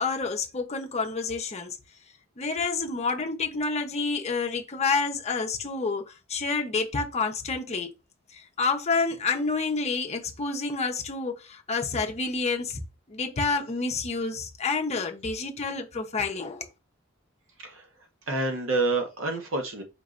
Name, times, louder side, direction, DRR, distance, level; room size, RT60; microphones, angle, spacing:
voice 1, 0.0-1.8 2.4-7.9 8.3-12.8 13.1-16.7, left 4 dB, 30° left, 0.6 m, -29 dB
voice 2, 18.3-19.8, right 2 dB, 65° right, 0.9 m, -28 dB
5.2 x 3.1 x 2.5 m
head